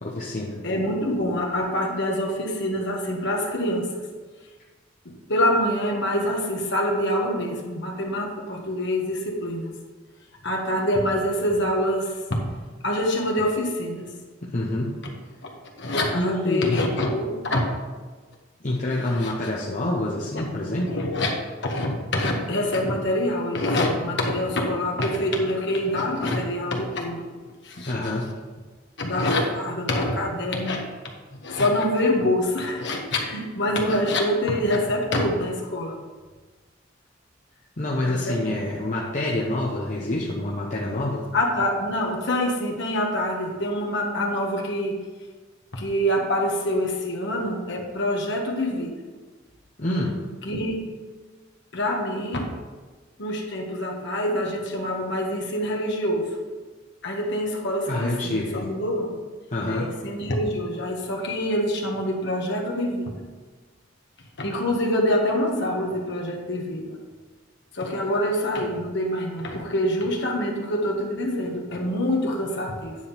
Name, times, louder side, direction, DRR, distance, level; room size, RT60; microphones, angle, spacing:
voice 1, 0.0-0.6 14.4-15.0 16.1-16.8 18.6-21.0 27.8-28.3 37.8-41.3 49.8-50.2 57.9-58.7 59.5-60.0, left 1 dB, 40° left, -4 dB, 1.0 m, -27 dB
voice 2, 0.6-3.9 5.3-9.7 10.4-12.5 12.8-14.1 15.0-15.1 15.8-17.6 19.2-19.3 20.3-20.4 20.8-21.3 21.6-27.3 27.6-27.9 29.0-30.8 31.4-36.0 38.1-38.6 41.3-45.0 45.7-49.0 50.4-50.8 51.7-52.5 53.2-56.2 57.0-59.1 59.7-63.1 64.4-67.0 67.7-73.0, left 1 dB, 60° left, 0 dB, 1.7 m, -25 dB
9.7 x 3.9 x 7.0 m, 1.4 s
head